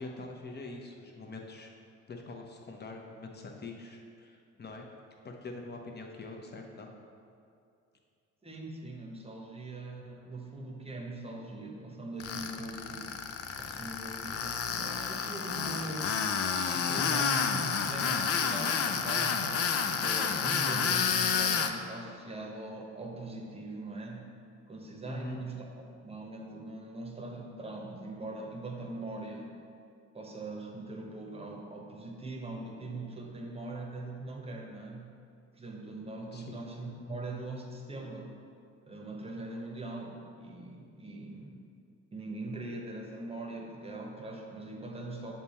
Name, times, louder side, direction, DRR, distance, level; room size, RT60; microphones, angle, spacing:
voice 1, 0.0-1.7 2.1-4.8 5.2-6.9 25.1-25.4 36.3-36.6, left 2 dB, 35° left, 1 dB, 0.9 m, -44 dB
voice 2, 8.4-13.2 13.5-16.1 16.7-24.3 24.7-29.5 30.1-35.2 35.5-38.4 38.9-41.6 42.1-45.3, right 2 dB, 20° right, 1 dB, 0.9 m, -41 dB
Tools, 12.2-21.7, left 6 dB, 50° left, 0.5 m, -30 dB
7.3 x 3.4 x 4.2 m, 2.4 s
cardioid pair, 90°, 30 cm